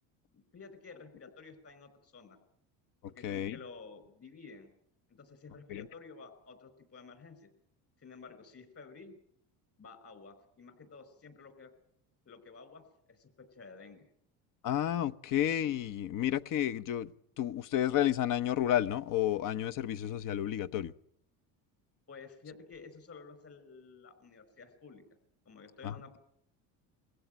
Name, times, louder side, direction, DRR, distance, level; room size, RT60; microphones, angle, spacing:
voice 1, 0.5-2.4 3.0-4.7 5.1-7.5 8.0-9.2 9.8-11.7 12.3-12.8 13.1-14.0 22.1-25.0 25.5-26.2, left 4 dB, 40° left, 11 dB, 5.3 m, -52 dB
voice 2, 3.2-3.6 5.7-5.9 14.6-17.1 17.4-20.9 25.8-26.2, left 11 dB, 55° left, 12 dB, 1.0 m, -31 dB
23.5 x 16.0 x 9.1 m, 0.75 s
cardioid pair, 115°, 38 cm